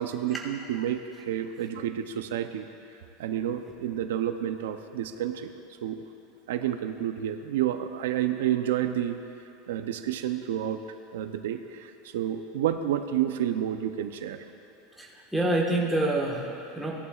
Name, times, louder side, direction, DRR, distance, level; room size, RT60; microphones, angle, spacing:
voice 1, 0.0-2.7 3.2-5.5 5.8-6.0 6.5-9.2 9.7-10.8 11.1-14.4, right 11 dB, 90° right, 8 dB, 0.6 m, -30 dB
voice 2, 15.0-16.9, right 2 dB, ahead, -4 dB, 1.4 m, -27 dB
17.5 x 11.0 x 2.4 m, 3.0 s
supercardioid pair, 160°, 0 cm